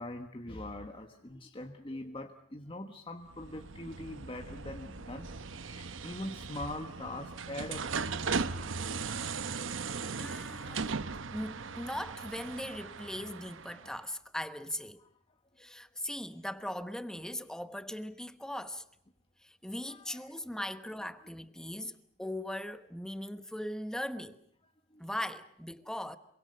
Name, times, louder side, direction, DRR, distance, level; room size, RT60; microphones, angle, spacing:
voice 1, 0.0-5.3 5.5-7.9 8.3-8.6 10.4-11.0 15.0-15.1 19.9-20.4 24.9-25.0, left 1 dB, 25° left, 1.3 m, -43 dB
sound 1, 3.3-14.0, right 4 dB, 75° right, 1.0 m, -38 dB
voice 2, 10.0-11.0 11.3-15.0 15.6-18.8 19.4-24.4 25.0-26.2, left 1 dB, 5° left, 1.1 m, -39 dB
27.0 x 24.0 x 6.6 m
head